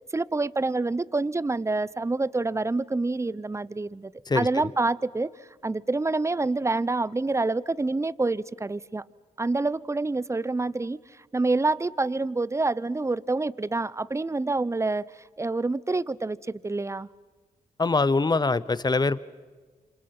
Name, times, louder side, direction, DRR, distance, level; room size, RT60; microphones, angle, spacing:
voice 1, 0.1-5.3 5.6-9.0 9.4-11.0 11.3-17.1, right 3 dB, 20° right, 21 dB, 0.7 m, -27 dB
voice 2, 17.8-19.2, left 3 dB, 30° left, 18 dB, 1.0 m, -23 dB
27.5 x 26.0 x 6.0 m, 1.4 s
cardioid pair, 55°, 15 cm